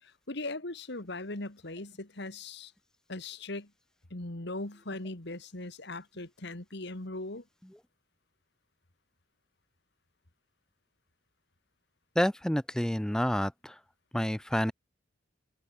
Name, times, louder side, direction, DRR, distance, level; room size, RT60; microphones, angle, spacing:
voice 1, 0.0-2.7 3.1-3.7 4.1-7.4, left 2 dB, 60° left, 2.4 m, -39 dB
voice 2, 12.2-13.8 14.1-14.7, equal, 5° left, 0.4 m, -29 dB
head